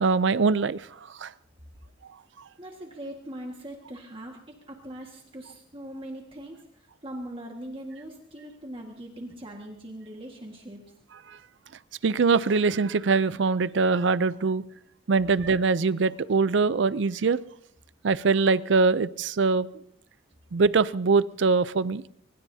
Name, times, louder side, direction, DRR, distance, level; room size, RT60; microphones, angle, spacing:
voice 1, 0.0-1.3 11.3-11.4 12.0-14.6 15.1-17.4 18.0-19.7 20.5-22.0, right 4 dB, 70° right, 17 dB, 0.5 m, -23 dB
voice 2, 2.6-10.8, right 1 dB, 30° right, 1 dB, 1.7 m, -41 dB
24.0 x 20.5 x 2.8 m, 0.72 s
head